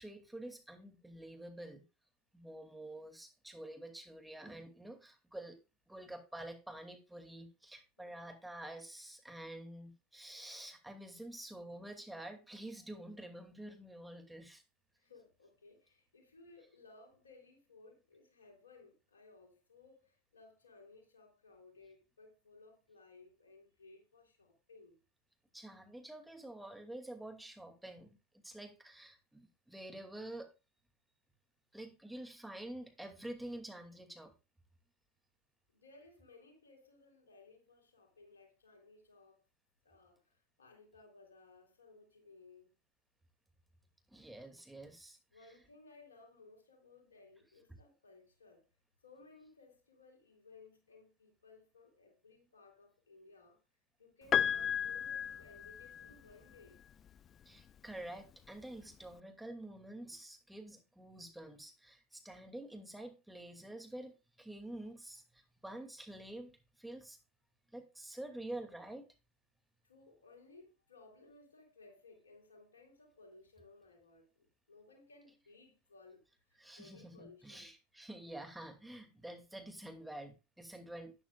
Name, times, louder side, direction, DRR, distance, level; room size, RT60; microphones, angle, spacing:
voice 1, 0.0-1.8 2.3-5.6 5.9-14.6 25.5-30.5 31.7-34.3 44.1-45.2 57.5-67.2 67.7-69.1 76.6-81.1, right 1 dB, 5° right, 2.5 m, -48 dB
voice 2, 8.0-8.3 15.0-25.0 35.7-39.4 39.8-42.7 45.3-48.7 49.0-53.6 54.0-56.8 69.8-76.2 76.8-77.7, left 3 dB, 85° left, 3.6 m, -60 dB
Piano, 54.3-56.3 57.6-57.7, left 9 dB, 35° left, 0.4 m, -34 dB
12.0 x 10.0 x 2.5 m
figure-of-eight pair, 80°, 0 cm